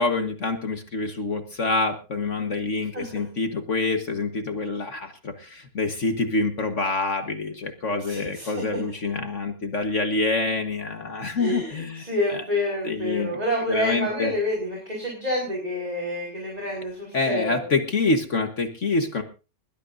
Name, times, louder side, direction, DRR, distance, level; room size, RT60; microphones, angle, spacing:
voice 1, 0.0-12.0 12.8-13.4 13.6-14.3 17.1-19.2, left 3 dB, 45° left, 6 dB, 1.7 m, -26 dB
voice 2, 2.9-3.3 8.1-8.8 11.4-17.7, left 1 dB, 20° right, -1 dB, 4.9 m, -28 dB
21.0 x 16.5 x 2.7 m, 0.33 s
omnidirectional pair, 1.9 m